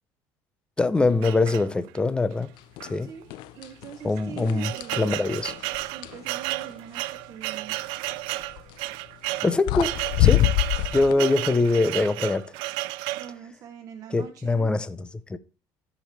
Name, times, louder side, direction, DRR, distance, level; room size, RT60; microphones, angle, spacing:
voice 1, 0.8-2.5 2.9-3.1 4.0-5.5 9.4-10.5 10.9-12.5 14.1-15.4, left 3 dB, 10° left, 0.5 m, -23 dB
sound 1, 1.2-2.1 2.8-2.9 3.2-3.3 4.0-13.3, right 18 dB, 80° right, 0.4 m, -32 dB
sound 2, 2.8-3.0 3.3-3.9 4.4-6.2 8.4-8.7 9.4-9.5 9.7-11.1, left 16 dB, 70° left, 0.5 m, -24 dB
voice 2, 3.0-5.3 5.8-7.8 11.1-11.4 12.8-14.7, right 9 dB, 45° right, 0.8 m, -43 dB
13.5 x 5.0 x 3.3 m
cardioid pair, 140°, 8 cm